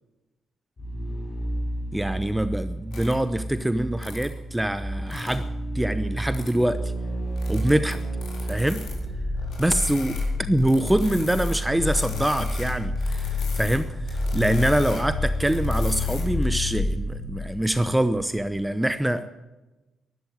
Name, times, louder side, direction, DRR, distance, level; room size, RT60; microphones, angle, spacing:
sound 1, 0.8-18.3 18.6-18.7, left 1 dB, 45° left, 4.1 m, -29 dB
voice 1, 1.9-5.5 5.7-6.9 7.5-8.0 8.5-8.9 9.6-19.3, right 1 dB, 10° right, 11 dB, 0.8 m, -25 dB
sound 2, 2.9-3.1 4.0-4.2 4.9-5.3 6.2-6.6 7.4-8.9 9.3-10.2 10.6-13.8 14.1-16.4, left 4 dB, 65° left, 4.3 m, -40 dB
12.0 x 11.0 x 9.7 m, 1.1 s
hypercardioid pair, 45°, 0 cm